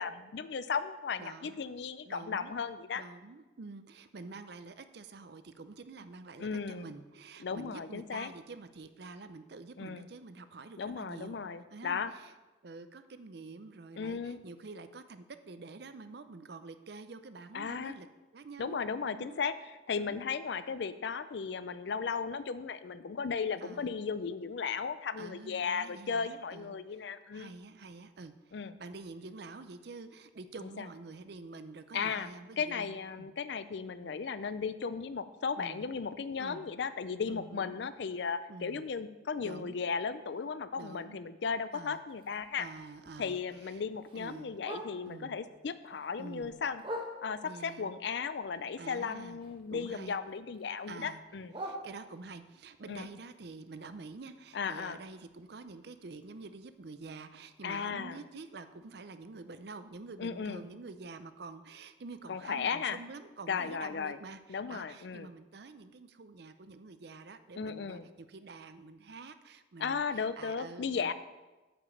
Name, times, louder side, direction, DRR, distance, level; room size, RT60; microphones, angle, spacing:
voice 1, 0.0-3.0 6.4-6.9 7.4-8.3 9.8-10.1 10.8-12.1 14.0-14.4 17.5-18.0 18.6-27.5 28.5-28.7 30.8-30.9 31.9-32.3 32.6-42.7 43.2-46.8 47.2-51.5 52.9-53.1 54.5-55.0 57.6-58.2 60.2-60.6 62.3-63.0 63.5-64.2 64.5-65.3 67.5-68.1 69.8-71.1, left 5 dB, 60° left, 13 dB, 0.4 m, -36 dB
voice 2, 1.2-1.7 2.1-2.5 2.9-11.4 11.7-12.3 12.6-18.1 18.3-19.4 20.0-20.2 23.6-24.0 25.2-27.0 27.3-33.3 34.0-34.2 35.6-35.9 36.4-36.7 37.3-37.8 38.5-38.9 39.4-39.8 40.8-41.2 41.7-42.0 42.6-43.8 44.1-44.6 45.1-45.4 46.2-46.6 47.4-47.9 48.8-49.4 49.7-50.2 50.9-51.2 51.6-71.1, right 3 dB, 55° right, 11 dB, 0.5 m, -48 dB
Bark, 42.1-45.3 45.7-47.6 48.0-49.9 50.1-52.5 52.9-56.8 57.2-57.3 57.6-57.9 58.4-58.5 58.8-58.9 59.4-59.5, equal, 25° right, 1.0 m, -47 dB
8.7 x 5.1 x 7.0 m, 1.1 s
head